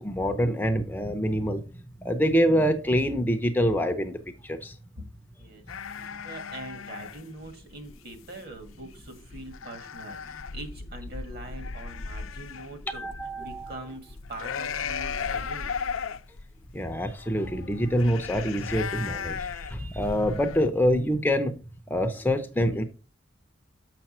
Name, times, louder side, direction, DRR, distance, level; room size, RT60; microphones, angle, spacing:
voice 1, 0.0-1.6 2.0-4.2 4.4-4.7 12.9-13.9 16.7-21.5 21.9-22.8, equal, 10° left, 0.6 m, -26 dB
sound 1, 5.7-20.7, left 6 dB, 90° left, 0.6 m, -36 dB
voice 2, 6.0-13.1 13.4-15.7, right 1 dB, 50° right, 1.7 m, -43 dB
6.8 x 5.9 x 4.2 m
head